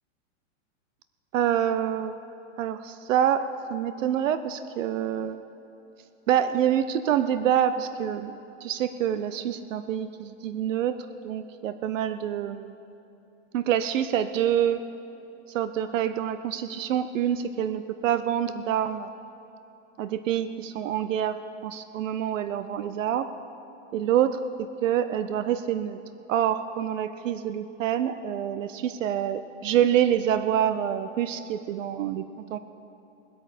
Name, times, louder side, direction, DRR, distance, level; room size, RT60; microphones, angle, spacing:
voice 1, 1.3-2.1 2.6-5.4 6.3-8.3 8.6-12.8 13.5-14.9 15.5-19.1 20.0-23.3 23.9-26.0 26.3-32.6, right 10 dB, 75° right, 11 dB, 0.7 m, -26 dB
20.0 x 8.7 x 5.0 m, 2.9 s
supercardioid pair, 180°, 38 cm